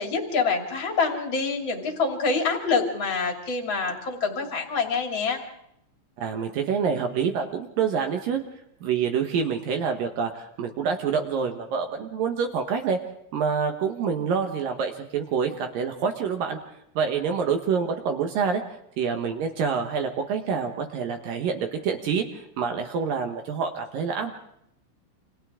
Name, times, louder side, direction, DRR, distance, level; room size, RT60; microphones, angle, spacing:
voice 1, 0.0-5.4, left 4 dB, 30° left, 3 dB, 2.6 m, -26 dB
voice 2, 6.2-8.4 8.8-13.0 13.3-16.6 17.0-24.3, right 6 dB, 65° right, 5 dB, 2.3 m, -27 dB
29.5 x 26.5 x 3.7 m, 0.77 s
omnidirectional pair, 5.5 m